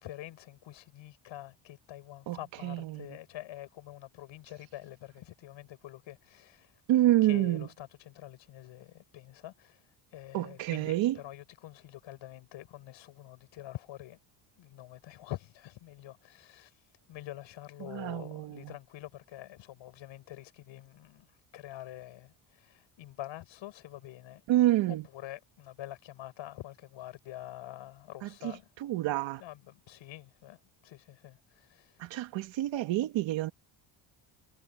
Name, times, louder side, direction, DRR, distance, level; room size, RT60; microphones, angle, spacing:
voice 1, 0.0-6.8 7.2-9.9 10.1-14.2 14.5-16.7 17.1-21.3 21.5-24.4 24.9-28.7 29.4-32.0, left 14 dB, 75° left, 6.6 m, -46 dB
voice 2, 2.6-3.1 6.9-7.7 10.3-11.2 17.8-18.6 24.5-25.0 28.2-28.5 28.8-29.4 32.0-33.5, right 14 dB, 75° right, 1.8 m, -28 dB
cardioid pair, 165°, 46 cm